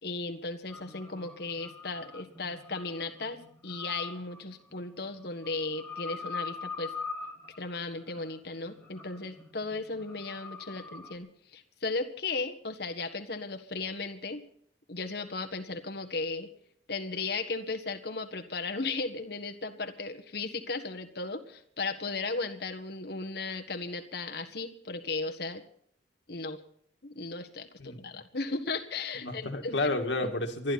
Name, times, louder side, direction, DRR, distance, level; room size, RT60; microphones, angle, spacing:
voice 1, 0.0-6.9 7.6-14.4 14.9-16.5 16.9-25.6 26.3-26.6 27.0-29.8, left 3 dB, 65° left, 7 dB, 1.6 m, -36 dB
sound 1, 0.7-11.2, left 4 dB, 10° left, 2.3 m, -43 dB
voice 2, 27.8-28.2 29.2-30.7, left 2 dB, 80° left, 4 dB, 2.1 m, -31 dB
28.0 x 11.5 x 4.2 m, 0.62 s
head